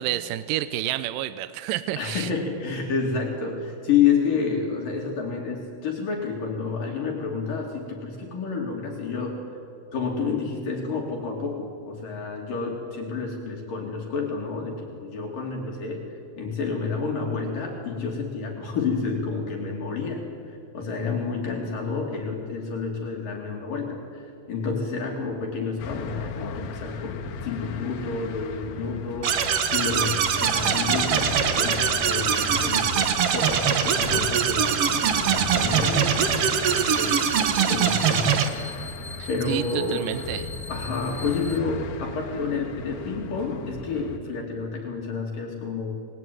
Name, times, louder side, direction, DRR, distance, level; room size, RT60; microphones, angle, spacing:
voice 1, 0.0-2.3 39.2-40.5, right 13 dB, 75° right, 12 dB, 2.2 m, -29 dB
voice 2, 2.0-9.4 9.9-16.0 16.4-34.9 35.2-37.2 37.7-38.7 39.3-40.1 40.7-46.0, left 5 dB, 60° left, 0 dB, 4.3 m, -29 dB
sound 1, 25.8-44.2, left 4 dB, 85° left, 3.4 m, -36 dB
sound 2, 29.2-38.5, right 8 dB, 60° right, 1.6 m, -23 dB
sound 3, 36.6-41.6, left 3 dB, 40° left, 0.6 m, -41 dB
27.5 x 20.5 x 9.4 m, 2.4 s
omnidirectional pair, 4.4 m